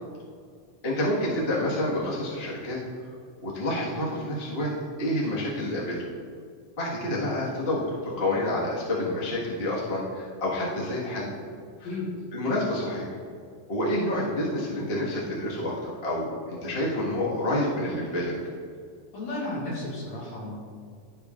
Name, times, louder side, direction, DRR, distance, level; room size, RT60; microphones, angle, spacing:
voice 1, 0.8-2.8 3.4-4.7 5.0-6.0 6.8-7.8 8.2-11.3 11.8-11.9 12.3-13.2 13.7-18.3, left 1 dB, 40° left, -6 dB, 0.8 m, -28 dB
voice 2, 19.1-20.6, left 2 dB, 60° left, -6 dB, 3.0 m, -33 dB
15.0 x 5.2 x 2.5 m, 2.2 s
omnidirectional pair, 3.8 m